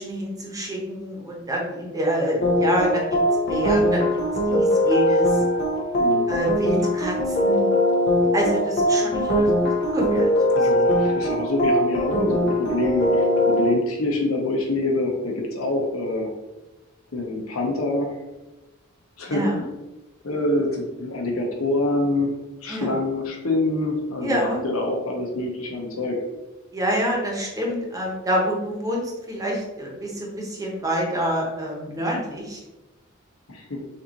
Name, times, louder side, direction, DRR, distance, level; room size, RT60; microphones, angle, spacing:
voice 1, 0.0-3.2 3.5-4.2 4.5-5.3 6.3-7.7 8.3-10.3 19.3-19.7 22.7-22.9 24.2-24.6 26.7-32.6, equal, 15° right, -2 dB, 1.0 m, -27 dB
sound 1, 2.4-13.7, equal, 55° left, 0.8 m, -21 dB
voice 2, 6.0-6.3 10.5-16.3 17.1-18.1 19.2-19.4 20.2-22.3 22.6-26.2 30.0-30.1 33.5-33.8, left 2 dB, 85° left, 1 dB, 0.9 m, -25 dB
6.4 x 2.6 x 2.9 m, 1.1 s
head